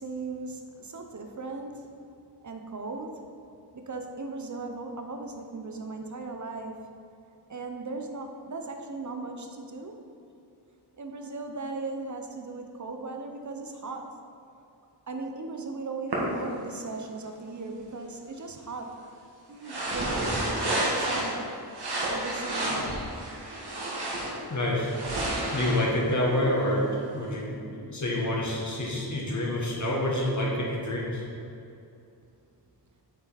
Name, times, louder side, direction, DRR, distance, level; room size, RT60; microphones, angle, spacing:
voice 1, 0.0-2.0 2.4-3.3 3.7-6.8 7.5-10.0 11.0-14.1 15.1-19.0 19.5-21.5 22.1-23.1, right 3 dB, 45° right, 4 dB, 0.9 m, -37 dB
sound 1, 16.1-16.2 19.6-21.4 21.7-24.4 24.8-27.0, right 1 dB, 65° right, 1.9 m, -31 dB
voice 2, 24.5-24.9 25.5-31.2, left 1 dB, 45° left, -4 dB, 2.0 m, -28 dB
9.1 x 5.7 x 4.3 m, 2.6 s
wide cardioid pair, 105°, 42 cm